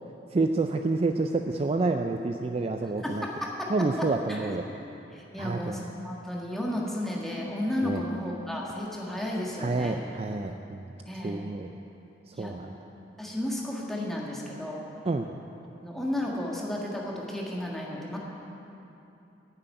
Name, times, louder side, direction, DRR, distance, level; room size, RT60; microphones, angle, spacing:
voice 1, 0.3-3.2 3.7-4.7 5.4-5.8 7.8-8.0 9.6-10.9 11.2-11.7 12.3-12.7 15.1-15.3, right 3 dB, 35° right, 5 dB, 0.4 m, -28 dB
voice 2, 3.0-4.6 5.1-10.0 11.0-11.5 12.3-12.5 13.2-14.8 15.8-18.2, left 1 dB, ahead, -3 dB, 1.6 m, -33 dB
10.0 x 7.7 x 9.3 m, 2.9 s
head